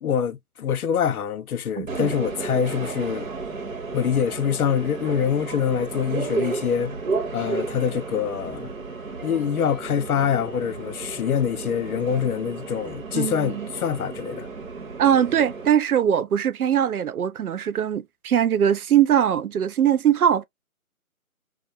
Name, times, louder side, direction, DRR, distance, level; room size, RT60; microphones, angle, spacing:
voice 1, 0.0-3.3 3.9-6.9 7.3-8.7 9.2-14.5, left 8 dB, 80° left, 0.6 m, -25 dB
voice 2, 1.8-2.1 13.1-13.7 15.0-20.5, right 9 dB, 80° right, 0.6 m, -21 dB
Subway metro underground, 1.9-15.7, right 4 dB, 65° right, 1.0 m, -33 dB
2.4 x 2.0 x 2.6 m
figure-of-eight pair, 170°, 43 cm